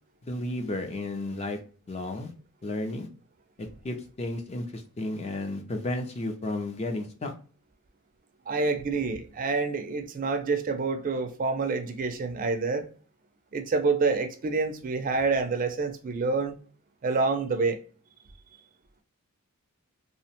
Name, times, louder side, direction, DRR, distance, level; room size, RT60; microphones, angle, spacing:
voice 1, 0.2-1.6 1.9-2.3 2.6-3.1 3.6-7.3 8.5-8.7, left 2 dB, 30° left, 0.4 m, -33 dB
voice 2, 8.5-12.9 13.5-16.5 17.0-17.8, right 4 dB, 40° right, 0.4 m, -27 dB
2.7 x 2.1 x 2.8 m
head